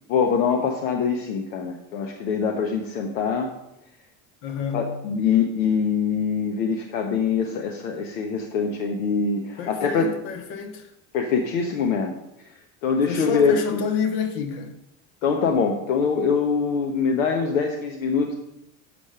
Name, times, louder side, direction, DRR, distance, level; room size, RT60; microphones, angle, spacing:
voice 1, 0.1-3.5 4.7-10.1 11.1-12.1 12.8-13.8 15.2-18.3, left 5 dB, 90° left, 1.0 m, -23 dB
voice 2, 4.4-4.9 9.6-10.9 13.0-14.7, left 6 dB, 70° left, 1.5 m, -29 dB
7.0 x 5.1 x 6.6 m
supercardioid pair, 95°, 39 cm